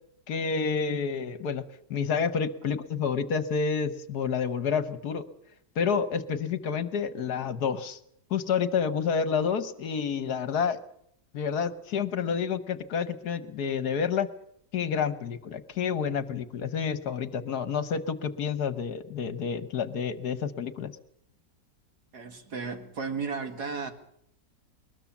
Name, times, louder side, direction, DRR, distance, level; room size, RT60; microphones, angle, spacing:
voice 1, 0.3-1.6 1.9-5.2 5.8-8.0 8.3-10.8 11.3-14.3 14.7-20.9, left 6 dB, 65° left, 13 dB, 1.5 m, -29 dB
voice 2, 22.1-23.9, right 5 dB, 65° right, 7 dB, 2.5 m, -34 dB
21.0 x 20.5 x 7.2 m, 0.71 s
omnidirectional pair, 1.9 m